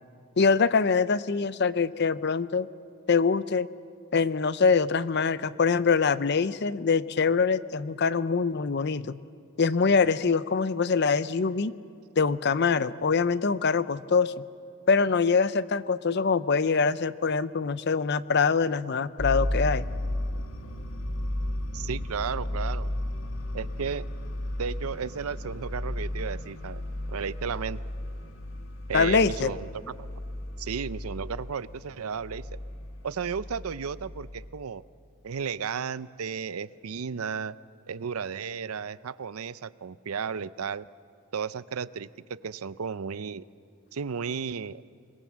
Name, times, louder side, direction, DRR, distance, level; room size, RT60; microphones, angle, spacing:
voice 1, 0.4-2.7 3.1-3.7 4.1-9.2 9.6-11.7 12.2-14.3 14.9-19.8 28.9-29.5, left 5 dB, 50° left, 15 dB, 0.6 m, -24 dB
sound 1, 19.2-34.5, left 1 dB, 70° left, 2.0 m, -34 dB
voice 2, 21.7-22.9 23.5-24.0 24.6-26.8 27.1-27.8 28.9-30.1 30.6-32.6 33.0-34.8 35.2-37.6 37.9-40.9 41.3-43.4 43.9-44.8, right 6 dB, 90° right, 17 dB, 0.6 m, -34 dB
26.0 x 21.5 x 7.5 m, 2.5 s
head